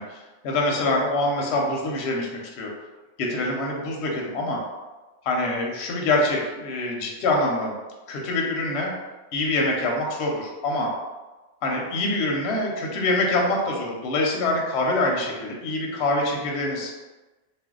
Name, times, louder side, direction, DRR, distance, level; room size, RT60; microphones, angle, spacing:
voice 1, 0.0-2.7 3.2-4.6 5.2-7.8 8.1-8.9 9.3-10.9 11.6-16.9, left 2 dB, 65° left, -1 dB, 0.7 m, -25 dB
2.5 x 2.0 x 3.6 m, 1.2 s
omnidirectional pair, 1.4 m